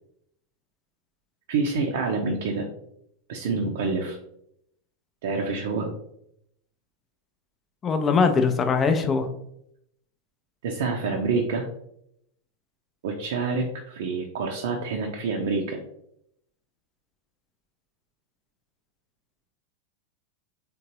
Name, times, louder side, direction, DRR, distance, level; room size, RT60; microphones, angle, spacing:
voice 1, 1.5-2.7 3.3-4.2 5.2-5.9 10.6-11.7 13.0-15.8, right 4 dB, 55° right, 1 dB, 0.5 m, -27 dB
voice 2, 7.8-9.3, left 5 dB, 25° left, 8 dB, 0.5 m, -21 dB
3.7 x 3.7 x 2.8 m, 0.75 s
figure-of-eight pair, 90°, 0 cm